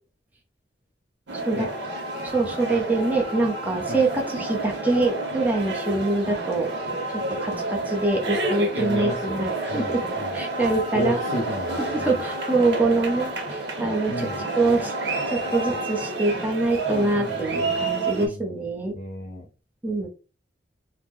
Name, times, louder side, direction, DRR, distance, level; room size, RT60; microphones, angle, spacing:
sound 1, 1.3-18.3, right 2 dB, 75° right, 0.9 m, -29 dB
voice 1, 2.2-6.7 7.4-10.0 10.3-11.2 11.8-14.3 14.6-14.9 15.3-18.9 19.8-20.1, right 2 dB, 10° right, 0 dB, 0.8 m, -24 dB
voice 2, 8.8-9.4 9.7-9.9 10.9-11.8 14.1-14.3 16.9-17.3 18.2-18.4 18.9-19.4, equal, 45° left, -2 dB, 0.5 m, -31 dB
2.9 x 2.1 x 3.5 m, 0.34 s
head